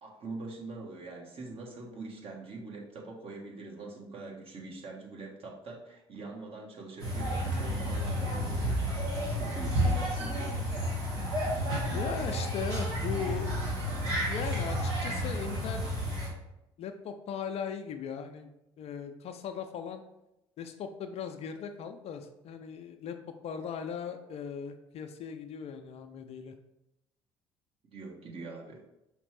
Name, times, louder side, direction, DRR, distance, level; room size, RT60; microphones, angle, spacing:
voice 1, 0.0-8.9 9.3-10.6 27.9-28.8, right 3 dB, 45° right, -1 dB, 1.3 m, -43 dB
sound 1, 7.0-16.3, equal, 80° right, 1.3 m, -31 dB
voice 2, 11.9-13.6 14.3-15.9 16.8-20.0 20.6-23.2 23.4-26.5, left 7 dB, 50° left, 7 dB, 0.5 m, -38 dB
5.1 x 3.2 x 3.2 m, 0.87 s
hypercardioid pair, 55°, 14 cm